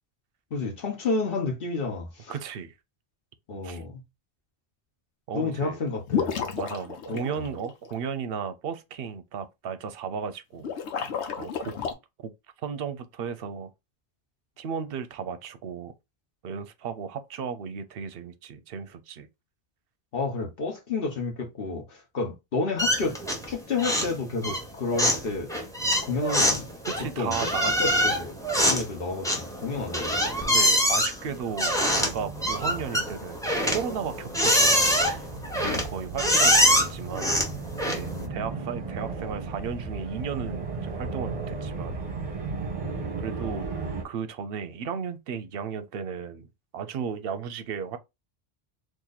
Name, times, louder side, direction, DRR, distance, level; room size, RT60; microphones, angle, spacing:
voice 1, 0.5-2.4 3.5-4.0 5.3-6.6 7.1-7.5 20.1-23.2 23.5-25.5 26.0-26.7 27.2-27.3 27.8-30.2 35.6-35.9 38.1-38.3 42.8-43.1, left 3 dB, 60° left, 1.1 m, -31 dB
voice 2, 2.3-2.7 3.6-3.8 5.3-5.8 6.6-10.7 11.0-11.7 12.2-12.3 12.6-13.7 14.6-15.9 16.4-19.3 26.9-28.1 30.5-33.4 33.7-35.3 35.8-37.3 37.9-42.0 43.2-43.7 44.0-46.5 46.7-48.0, right 7 dB, 65° right, 0.7 m, -35 dB
sound 1, 6.1-7.9 10.6-11.9, left 7 dB, 85° left, 1.0 m, -31 dB
sound 2, 22.8-23.5 23.8-24.2 24.4-38.2, equal, 5° left, 0.7 m, -24 dB
sound 3, 28.3-44.0, right 4 dB, 35° right, 0.8 m, -36 dB
2.9 x 2.6 x 3.9 m
omnidirectional pair, 1.1 m